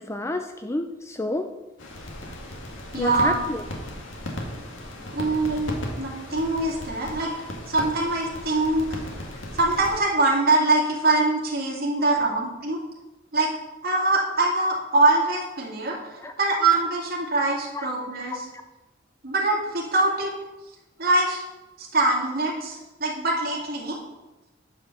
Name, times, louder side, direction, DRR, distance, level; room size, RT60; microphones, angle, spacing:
voice 1, 0.0-1.5 3.0-3.6 12.0-12.1 16.2-16.3 17.7-17.9 18.3-18.4, left 1 dB, 15° left, 6 dB, 0.4 m, -29 dB
sound 1, 1.8-10.0, left 1 dB, 85° left, 1.9 m, -36 dB
voice 2, 2.9-3.4 5.1-7.3 7.7-9.0 9.5-12.8 13.3-13.5 13.8-18.5 19.2-20.3 21.0-21.4 21.8-24.0, right 2 dB, 50° right, -2 dB, 2.4 m, -23 dB
9.5 x 5.2 x 6.9 m, 1.0 s
head